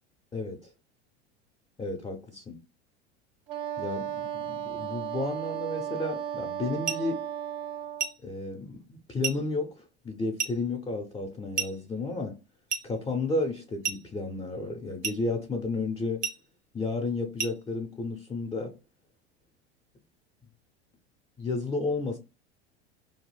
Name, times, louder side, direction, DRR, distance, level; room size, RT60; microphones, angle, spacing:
voice 1, 0.3-0.7 1.8-2.6 3.8-7.3 8.2-12.3 12.8-16.2 16.7-18.8 21.4-22.2, left 3 dB, 10° left, 0.4 m, -32 dB
Wind instrument woodwind instrument, 3.5-8.1, right 10 dB, 60° right, 0.5 m, -35 dB
sound 1, 6.9-7.1 8.0-8.3 9.2-9.5 10.4-10.6 11.6-11.8 12.7-13.0 13.8-14.1 15.0-15.3 16.2-16.5 17.4-17.6, right 6 dB, 90° right, 0.7 m, -32 dB
2.4 x 2.1 x 3.1 m
hypercardioid pair, 85°, 33 cm